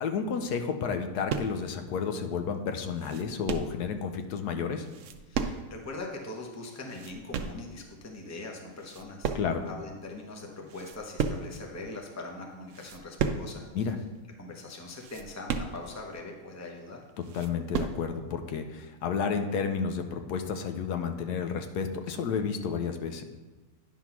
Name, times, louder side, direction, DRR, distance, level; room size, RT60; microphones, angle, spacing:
voice 1, 0.0-4.9 9.3-9.6 13.7-14.0 17.3-23.3, left 6 dB, 80° left, 6 dB, 1.2 m, -31 dB
sound 1, 1.3-1.7 2.3-2.4 2.7-3.8 4.8-5.9 6.2-6.3 6.7-7.7 8.2-8.5 8.8-9.8 10.1-10.2 10.6-11.6 12.1-12.3 12.7-13.6 13.8-13.9 14.3-14.4 14.9-16.1 16.6-16.7 17.0-18.0, right 6 dB, 65° right, 0.8 m, -34 dB
voice 2, 5.3-9.3 9.7-13.6 14.4-17.0, left 2 dB, 15° left, 1 dB, 0.7 m, -41 dB
9.8 x 3.6 x 5.9 m, 1.3 s
omnidirectional pair, 1.7 m